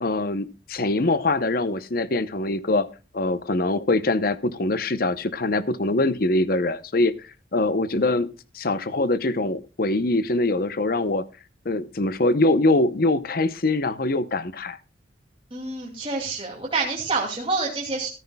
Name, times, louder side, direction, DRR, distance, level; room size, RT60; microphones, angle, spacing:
voice 1, 0.0-2.9 3.1-7.1 7.5-8.3 8.5-11.2 11.6-14.8, left 2 dB, 55° left, 14 dB, 0.8 m, -23 dB
voice 2, 15.5-18.1, right 3 dB, 30° right, -2 dB, 2.5 m, -27 dB
13.5 x 13.5 x 2.3 m, 0.30 s
head